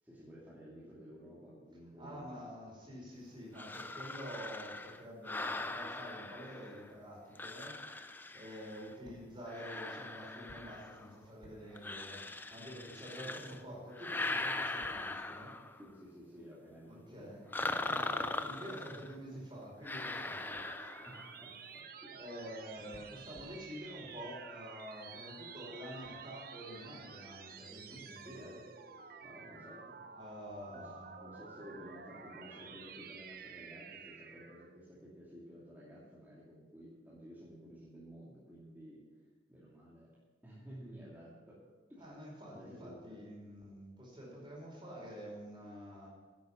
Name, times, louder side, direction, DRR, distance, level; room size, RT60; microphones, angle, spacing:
voice 1, 0.0-2.4 13.0-13.8 15.7-18.2 18.9-19.0 19.3-19.4 20.2-20.5 21.0-22.4 27.7-28.7 29.2-30.2 30.7-39.2 39.5-40.1 40.4-41.6 41.9-42.1 42.4-43.2, equal, 10° right, -9 dB, 2.7 m, -53 dB
voice 2, 2.0-8.0 8.3-15.5 16.9-17.5 17.8-20.6 22.2-28.5 30.2-31.1 42.0-46.1, equal, 25° right, -3 dB, 5.0 m, -48 dB
sound 1, 3.6-6.9 7.4-8.9 9.5-11.1 11.8-13.6 13.9-15.9 17.5-19.1 19.8-21.4, left 2 dB, 10° left, 0.5 m, -40 dB
sound 2, 20.1-34.8, right 6 dB, 55° right, 0.9 m, -51 dB
11.0 x 9.2 x 7.3 m, 1.3 s
head